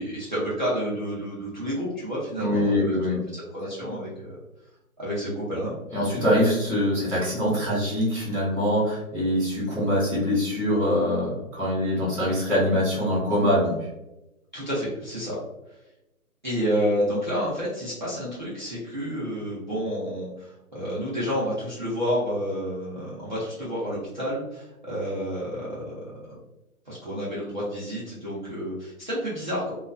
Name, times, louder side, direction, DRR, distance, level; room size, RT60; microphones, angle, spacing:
voice 1, 0.0-4.3 5.0-5.8 14.5-15.4 16.4-26.3 26.9-29.7, equal, 35° right, -10 dB, 0.6 m, -30 dB
voice 2, 2.4-3.2 5.9-13.8, equal, 10° left, -17 dB, 0.8 m, -24 dB
2.3 x 2.2 x 2.4 m, 0.93 s
hypercardioid pair, 170°, 44 cm